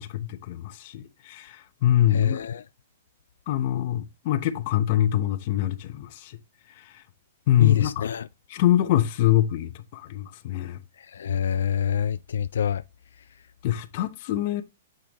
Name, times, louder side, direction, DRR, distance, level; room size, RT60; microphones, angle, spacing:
voice 1, 0.0-2.4 3.5-6.4 6.8-7.0 7.5-8.1 8.5-10.8 13.6-14.6, left 12 dB, 40° left, 0.8 m, -24 dB
voice 2, 2.1-2.6 7.6-8.3 11.1-12.8, left 8 dB, 80° left, 0.3 m, -26 dB
8.0 x 5.1 x 3.0 m
hypercardioid pair, 165°, 0 cm